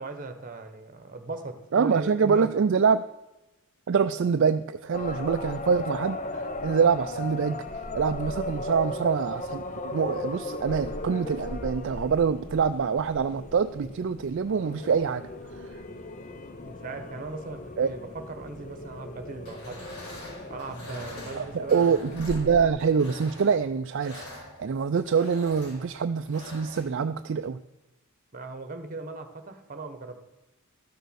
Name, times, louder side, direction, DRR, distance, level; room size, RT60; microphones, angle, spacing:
voice 1, 0.0-2.5 16.6-19.8 20.5-21.9 28.3-30.2, right 2 dB, 40° right, 8 dB, 1.2 m, -38 dB
voice 2, 1.7-3.0 3.9-7.6 7.9-15.2 17.8-17.9 21.3-27.6, right 6 dB, 55° right, 9 dB, 0.4 m, -25 dB
sound 1, 4.9-22.7, left 2 dB, 35° left, 0.7 m, -37 dB
sound 2, 19.4-26.8, left 2 dB, 85° left, 4.7 m, -45 dB
13.5 x 6.7 x 6.4 m, 1.0 s
head